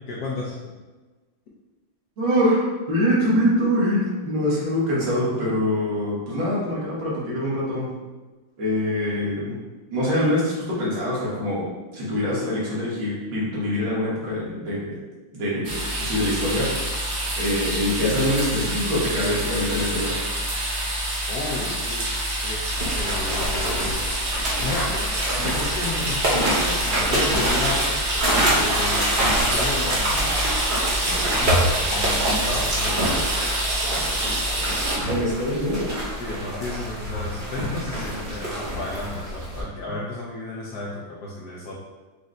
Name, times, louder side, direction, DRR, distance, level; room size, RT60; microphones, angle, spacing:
voice 1, 0.1-0.6 21.3-22.1 22.4-24.1 24.6-28.0 28.5-30.4 30.9-33.3 36.2-41.7, left 2 dB, 75° left, -4 dB, 0.9 m, -33 dB
voice 2, 2.2-7.9 8.6-9.6 9.9-11.7 11.9-15.0 15.3-16.9 17.4-20.2 35.1-36.1, equal, 80° right, -7 dB, 2.2 m, -24 dB
sound 1, 15.6-35.0, right 1 dB, 60° right, 1.0 m, -27 dB
sound 2, 22.8-39.6, right 1 dB, 40° right, 0.7 m, -26 dB
5.1 x 2.1 x 3.7 m, 1.3 s
omnidirectional pair, 2.3 m